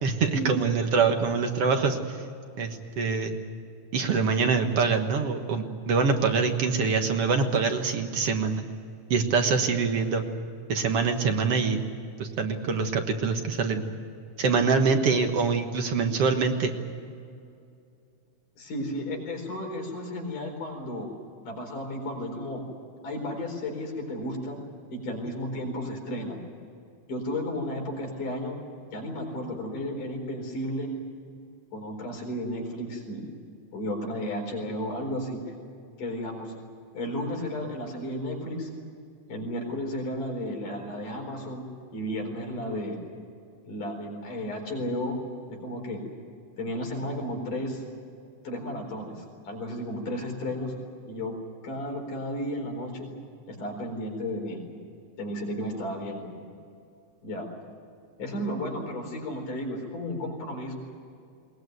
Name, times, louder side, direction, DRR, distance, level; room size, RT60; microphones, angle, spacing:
voice 1, 0.0-2.2 2.6-3.3 3.9-8.7 9.1-10.2 10.7-11.8 12.2-13.9 14.4-16.7, right 5 dB, 55° right, 5 dB, 2.1 m, -25 dB
voice 2, 18.6-21.1 21.4-22.6 23.0-24.6 24.9-26.4 27.1-28.6 28.9-30.9 31.7-33.2 33.7-35.5 36.0-36.5 36.9-38.7 39.3-43.0 43.7-45.2 45.5-46.0 46.6-47.8 48.4-50.7 51.1-51.4 51.6-53.1 53.5-54.6 55.2-56.3 57.2-57.5 58.2-60.7, equal, 80° left, 1 dB, 5.9 m, -33 dB
21.0 x 20.0 x 9.3 m, 2.4 s
omnidirectional pair, 3.6 m